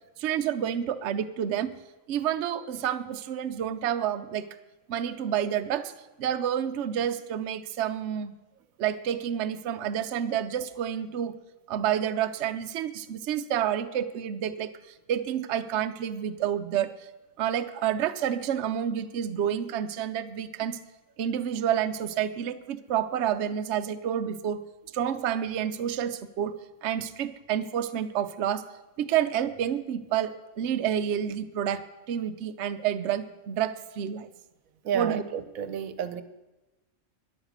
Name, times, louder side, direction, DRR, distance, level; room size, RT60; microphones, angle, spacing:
voice 1, 0.2-1.7 2.1-4.5 4.9-5.9 6.2-8.3 8.8-11.3 11.7-14.7 15.1-16.9 17.4-20.8 21.2-24.6 24.9-26.5 26.8-28.6 29.0-34.3 34.9-35.2, right 9 dB, 60° right, 9 dB, 0.9 m, -29 dB
voice 2, 34.8-36.2, right 8 dB, 80° right, 11 dB, 1.2 m, -31 dB
13.0 x 10.5 x 6.4 m, 1.1 s
omnidirectional pair, 1.5 m